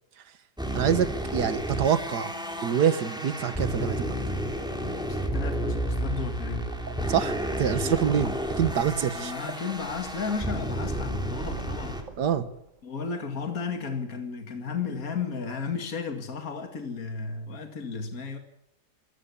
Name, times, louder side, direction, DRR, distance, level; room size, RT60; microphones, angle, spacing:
sound 1, 0.6-12.0, equal, ahead, 3.0 m, -31 dB
voice 1, 0.7-2.3 2.6-4.2 7.1-9.3 12.2-12.5, right 8 dB, 70° right, 13 dB, 1.9 m, -26 dB
voice 2, 5.1-6.8 9.1-12.0 12.8-18.4, left 5 dB, 55° left, 5 dB, 2.6 m, -34 dB
sound 2, 6.7-12.8, right 4 dB, 50° right, 1.8 m, -42 dB
25.0 x 14.0 x 8.5 m, 0.79 s
omnidirectional pair, 1.8 m